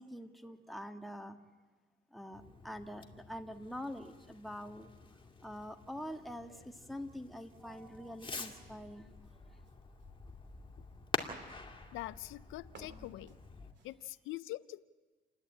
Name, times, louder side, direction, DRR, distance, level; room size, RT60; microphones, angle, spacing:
voice 1, 0.0-1.4 2.1-4.9 5.4-9.1, equal, ahead, 4 dB, 1.6 m, -45 dB
Fireworks, 2.3-13.7, left 3 dB, 25° left, 2.2 m, -47 dB
sound 1, 6.6-14.3, right 3 dB, 65° right, 3.0 m, -64 dB
voice 2, 11.9-13.4 13.8-14.8, left 16 dB, 90° left, 15 dB, 0.6 m, -44 dB
29.0 x 11.0 x 8.8 m, 1.3 s
cardioid pair, 90°, 20 cm